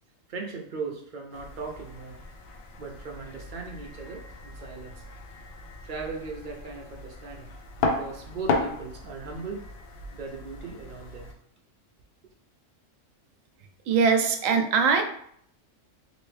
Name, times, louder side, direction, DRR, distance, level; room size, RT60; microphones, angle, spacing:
voice 1, 0.3-2.2 2.8-5.0 5.8-7.5 7.8-9.7 10.1-11.3, right 4 dB, 55° right, 1 dB, 0.6 m, -38 dB
sound 1, 1.3-11.3, left 3 dB, 65° left, 0.7 m, -35 dB
voice 2, 13.9-15.0, right 5 dB, 90° right, 5 dB, 1.0 m, -21 dB
3.0 x 3.0 x 3.1 m, 0.66 s
omnidirectional pair, 1.3 m